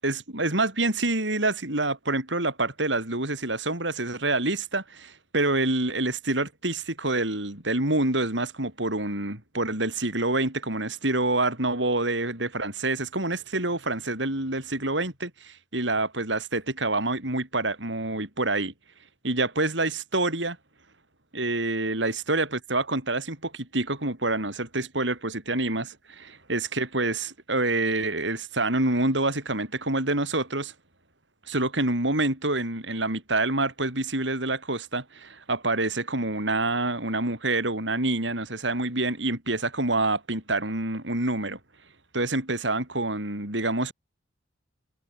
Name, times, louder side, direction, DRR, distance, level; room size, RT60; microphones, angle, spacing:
voice 1, 0.0-18.7 19.2-20.6 21.3-30.7 31.5-41.6 42.1-43.9, right 2 dB, 70° right, 6.9 m, -27 dB
head